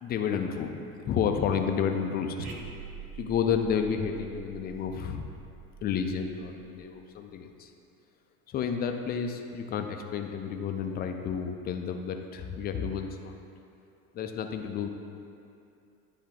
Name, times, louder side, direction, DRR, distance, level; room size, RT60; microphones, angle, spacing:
voice 1, 0.0-2.5 3.1-5.2 5.8-7.7 8.5-13.3 14.1-14.9, left 7 dB, 25° left, 5 dB, 0.4 m, -31 dB
sound 1, 2.4-7.0, right 5 dB, 75° right, 0.8 m, -45 dB
9.4 x 3.5 x 3.7 m, 2.6 s
figure-of-eight pair, 75°, 44 cm